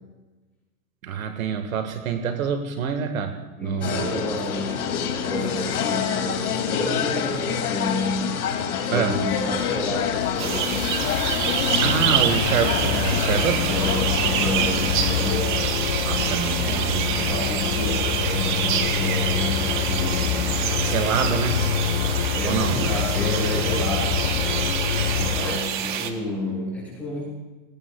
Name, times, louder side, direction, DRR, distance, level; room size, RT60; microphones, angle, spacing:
voice 1, 1.0-4.1 8.9-9.2 11.8-13.7 14.4-14.8 16.0-17.3 20.8-21.6 22.4-22.9 25.2-25.4, right 7 dB, 70° right, 7 dB, 1.6 m, -26 dB
voice 2, 3.6-8.3 8.7-10.7 13.2-15.5 17.3-20.5 22.3-24.3 25.4-27.3, left 1 dB, 5° left, -7 dB, 6.2 m, -30 dB
sound 1, 3.8-15.4, left 7 dB, 85° left, 2.5 m, -27 dB
sound 2, 9.1-25.6, left 9 dB, 50° left, 1.1 m, -26 dB
sound 3, 10.4-26.1, right 9 dB, 35° right, 1.0 m, -27 dB
27.5 x 18.5 x 2.3 m, 1.2 s
supercardioid pair, 175°, 44 cm